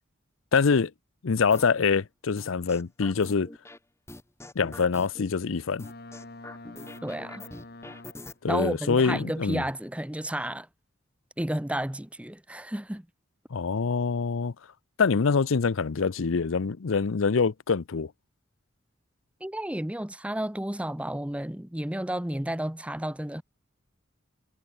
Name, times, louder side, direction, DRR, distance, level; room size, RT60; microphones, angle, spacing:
voice 1, 0.5-0.9 1.2-3.5 4.6-5.9 8.4-9.6 13.5-14.5 15.0-18.1, left 5 dB, 90° left, 0.6 m, -25 dB
sound 1, 1.5-1.9 2.4-3.8 4.1-5.3 5.8-8.3, left 2 dB, 15° left, 1.3 m, -44 dB
Boat Water vehicle, 5.8-8.5, left 2 dB, 50° left, 1.6 m, -46 dB
voice 2, 7.0-7.4 8.5-10.7 11.4-13.1 19.4-23.4, right 1 dB, 5° right, 0.8 m, -32 dB
head